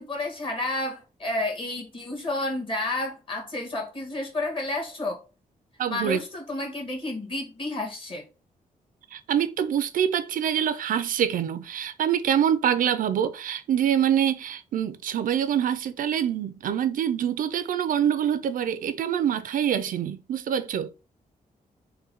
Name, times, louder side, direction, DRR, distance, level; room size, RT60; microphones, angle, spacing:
voice 1, 0.0-5.2 5.9-8.2, left 2 dB, 35° left, 1.5 m, -31 dB
voice 2, 5.8-6.2 9.1-20.9, right 9 dB, 70° right, 0.4 m, -25 dB
3.8 x 2.2 x 4.2 m
cardioid pair, 105°, 15 cm